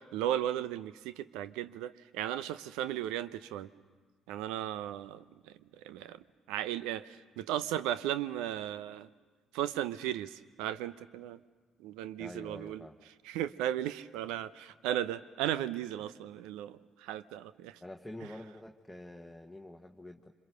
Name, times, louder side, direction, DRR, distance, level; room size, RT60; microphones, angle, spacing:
voice 1, 0.1-3.7 4.3-5.2 5.8-6.2 6.5-9.1 9.5-11.4 11.8-12.9 13.2-17.8, right 12 dB, 70° right, 16 dB, 0.7 m, -35 dB
voice 2, 12.2-12.9 17.8-20.3, left 1 dB, 5° left, 3 dB, 1.4 m, -47 dB
27.5 x 25.5 x 6.7 m, 1.4 s
figure-of-eight pair, 45°, 0 cm